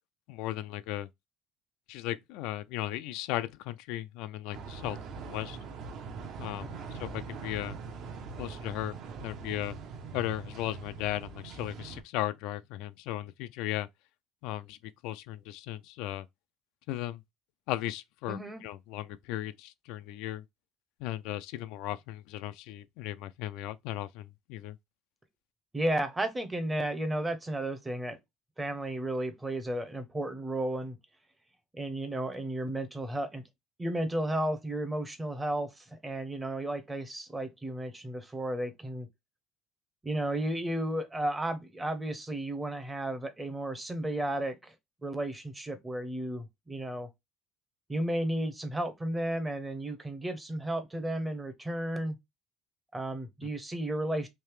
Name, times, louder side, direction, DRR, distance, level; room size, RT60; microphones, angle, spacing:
voice 1, 0.3-1.1 1.9-5.0 5.3-5.6 6.4-7.8 8.4-9.8 10.1-13.9 14.4-14.8 15.0-16.3 16.9-17.2 17.7-20.4 21.0-24.8 53.4-53.5, left 14 dB, 75° left, 0.3 m, -36 dB
sound 1, 4.5-12.0, right 5 dB, 50° right, 0.7 m, -42 dB
voice 2, 18.3-18.6 25.7-28.2 28.6-31.0 31.7-33.4 33.8-39.1 40.0-44.7 45.0-47.1 47.9-52.2 52.9-54.3, right 1 dB, 10° right, 0.7 m, -33 dB
3.2 x 2.7 x 3.2 m
cardioid pair, 140°, 0 cm